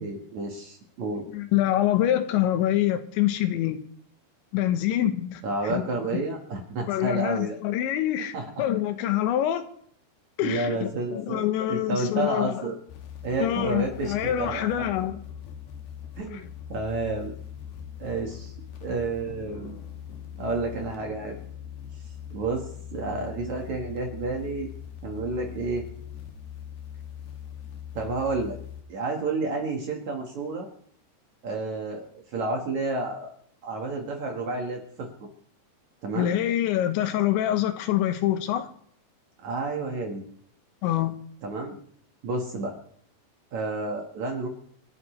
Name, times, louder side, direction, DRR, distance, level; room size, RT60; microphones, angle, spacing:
voice 1, 0.0-1.2 5.4-7.6 8.3-8.7 10.4-12.8 13.2-14.8 16.2-17.3 18.0-18.5 18.8-19.8 20.4-21.4 22.3-24.7 25.0-25.8 27.9-28.6 28.9-30.7 31.4-32.0 32.3-33.3 33.6-35.3 36.0-36.4 39.4-40.2 41.4-41.8 42.2-42.8 43.5-44.5, right 3 dB, 55° right, 2.3 m, -30 dB
voice 2, 1.3-3.8 4.5-5.8 6.9-8.3 8.6-9.6 10.4-12.6 13.4-15.2 16.3-16.4 36.2-38.7 40.8-41.1, left 12 dB, 90° left, 3.4 m, -25 dB
sound 1, 12.9-28.8, left 9 dB, 65° left, 3.1 m, -41 dB
28.0 x 11.0 x 3.3 m
omnidirectional pair, 5.1 m